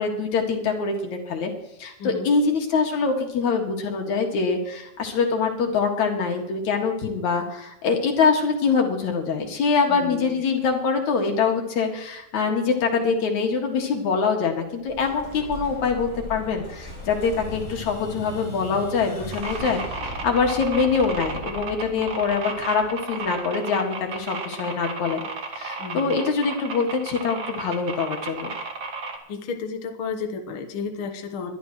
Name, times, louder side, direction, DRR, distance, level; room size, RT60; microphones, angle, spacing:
voice 1, 0.0-1.5 1.8-25.2 25.6-28.5, left 5 dB, 70° left, 2 dB, 3.3 m, -24 dB
voice 2, 2.0-2.3 9.9-10.4 25.8-26.2 29.3-31.6, left 5 dB, 55° left, 4 dB, 1.7 m, -32 dB
Explosion, 14.9-23.5, left 1 dB, 25° left, 5.2 m, -38 dB
sound 1, 19.3-29.2, right 4 dB, 45° right, 2.2 m, -33 dB
22.0 x 12.0 x 3.1 m, 0.83 s
omnidirectional pair, 3.4 m